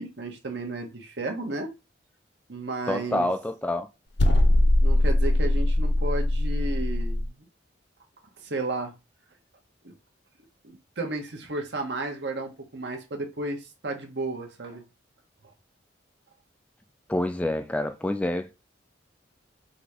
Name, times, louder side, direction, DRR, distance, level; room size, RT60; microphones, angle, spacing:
voice 1, 0.0-1.7 2.5-3.3 4.8-7.3 8.4-8.9 9.8-9.9 10.6-14.8, right 2 dB, 65° right, 1.1 m, -33 dB
voice 2, 2.9-3.9 17.1-18.5, left 1 dB, 5° left, 0.3 m, -27 dB
sound 1, 4.2-7.3, left 1 dB, 65° left, 0.7 m, -21 dB
3.9 x 2.8 x 4.7 m
head